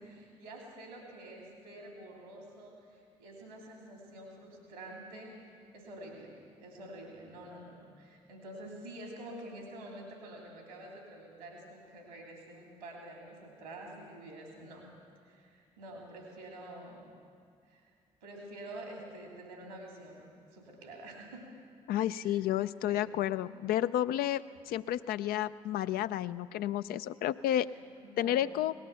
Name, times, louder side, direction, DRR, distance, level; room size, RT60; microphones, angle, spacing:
voice 1, 0.1-2.8 3.2-5.3 5.7-14.9 15.2-17.1 17.7-17.8 18.2-20.2 20.5-21.5 22.1-22.4 22.8-23.2 28.0-28.4, right 1 dB, 85° right, 0 dB, 2.9 m, -48 dB
voice 2, 21.9-27.7 28.2-28.7, left 12 dB, 60° left, 14 dB, 0.4 m, -31 dB
18.5 x 11.5 x 6.9 m, 2.2 s
figure-of-eight pair, 40°, 18 cm